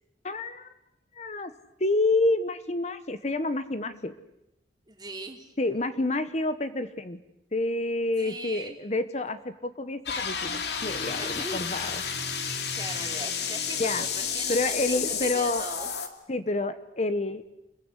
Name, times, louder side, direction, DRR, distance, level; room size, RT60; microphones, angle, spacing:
voice 1, 0.2-0.7 1.1-1.5 1.8-4.1 5.6-7.2 7.5-12.0 13.8-14.0 14.5-15.7 16.3-17.4, left 2 dB, 40° left, 11 dB, 1.2 m, -28 dB
voice 2, 4.9-5.5 8.2-8.8 11.2-11.6 12.4-15.9, right 2 dB, 25° right, 4 dB, 3.1 m, -40 dB
sound 1, 10.1-16.1, left 6 dB, 70° left, 2.6 m, -31 dB
28.5 x 22.5 x 8.2 m, 0.87 s
head